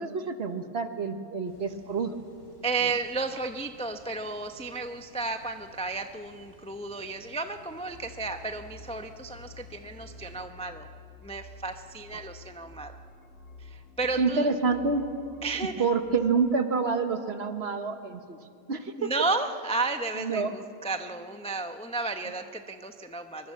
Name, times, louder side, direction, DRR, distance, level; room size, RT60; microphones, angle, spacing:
voice 1, 0.0-2.1 12.1-12.2 14.2-15.1 15.8-18.4 18.7-19.1 20.2-20.5, right 4 dB, 45° right, 7 dB, 1.4 m, -28 dB
sound 1, 1.4-10.4, left 1 dB, 70° left, 5.0 m, -56 dB
voice 2, 2.6-10.9 11.2-13.0 13.6-14.6 15.4-15.8 19.0-23.5, right 3 dB, 5° left, 6 dB, 0.5 m, -33 dB
sound 2, 7.9-16.1, left 2 dB, 50° left, 2.0 m, -49 dB
23.5 x 22.5 x 7.5 m, 2.5 s
omnidirectional pair, 1.6 m